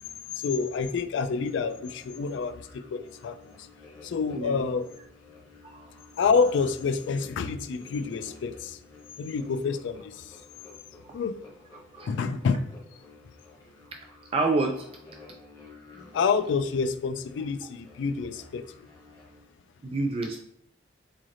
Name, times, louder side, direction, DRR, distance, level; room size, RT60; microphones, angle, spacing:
voice 1, 0.4-3.7 4.0-4.9 6.2-8.8 9.2-10.4 11.1-11.4 12.1-12.6 16.1-18.9, left 5 dB, 75° left, 11 dB, 0.3 m, -28 dB
sound 1, 0.7-19.4, left 3 dB, 20° left, 0.9 m, -52 dB
voice 2, 11.9-12.3 14.3-14.9 19.8-20.4, right 3 dB, 30° right, 3 dB, 0.3 m, -28 dB
3.9 x 3.2 x 2.5 m, 0.68 s
head